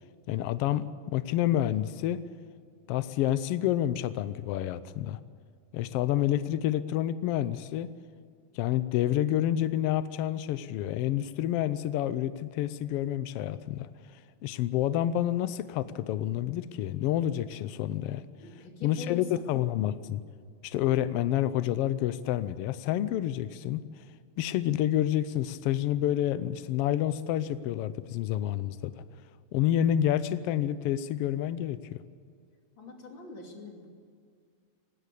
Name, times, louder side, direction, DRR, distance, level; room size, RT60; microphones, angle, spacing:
voice 1, 0.3-2.2 2.9-5.2 5.7-7.9 8.5-13.9 14.4-18.3 18.8-20.2 20.6-23.8 24.4-28.9 29.5-32.0, left 12 dB, 90° left, 14 dB, 1.3 m, -28 dB
voice 2, 18.4-19.4 32.8-33.9, left 3 dB, 40° left, 1 dB, 3.4 m, -44 dB
19.5 x 16.5 x 8.4 m, 2.1 s
omnidirectional pair, 3.4 m